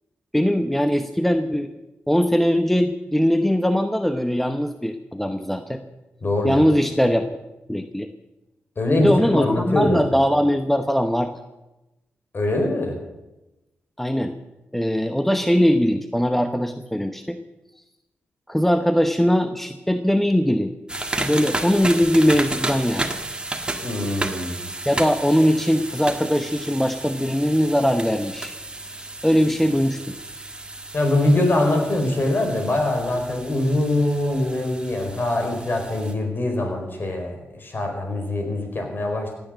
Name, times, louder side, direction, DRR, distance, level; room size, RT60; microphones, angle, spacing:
voice 1, 0.3-1.7 2.1-5.8 6.4-7.3 7.7-8.1 9.0-11.3 14.0-14.3 14.7-17.4 18.5-20.7 21.2-23.1 24.9-28.5 29.2-30.2, equal, 5° left, 8 dB, 1.0 m, -20 dB
voice 2, 6.2-6.7 8.8-10.0 12.3-13.0 23.8-24.7 30.9-39.3, left 1 dB, 45° left, 4 dB, 4.5 m, -23 dB
sound 1, 20.9-36.1, right 2 dB, 20° right, 1.8 m, -32 dB
16.5 x 9.2 x 7.6 m, 1.0 s
cardioid pair, 60°, 5 cm